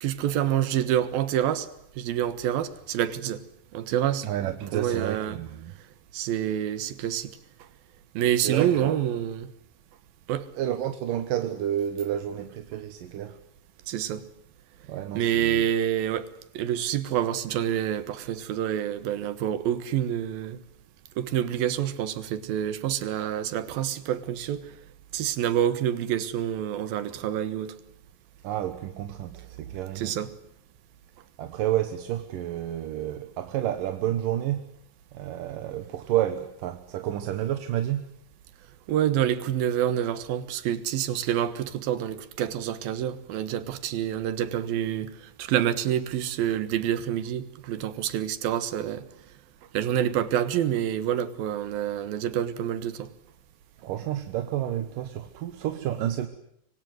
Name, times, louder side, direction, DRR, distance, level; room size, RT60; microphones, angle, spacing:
voice 1, 0.0-1.7 2.0-3.4 3.7-4.3 4.7-5.4 6.1-7.4 8.1-9.5 10.3-10.5 13.9-14.2 15.1-16.3 16.5-20.6 21.2-24.7 25.1-27.7 30.0-30.3 38.9-49.1 49.7-53.1, right 10 dB, 90° right, 3.2 m, -27 dB
voice 2, 4.2-5.7 8.4-9.0 10.6-13.4 14.9-15.6 28.4-30.2 31.4-34.7 35.1-38.1 53.8-56.3, right 11 dB, 70° right, 2.9 m, -30 dB
25.5 x 24.5 x 7.9 m
omnidirectional pair, 4.1 m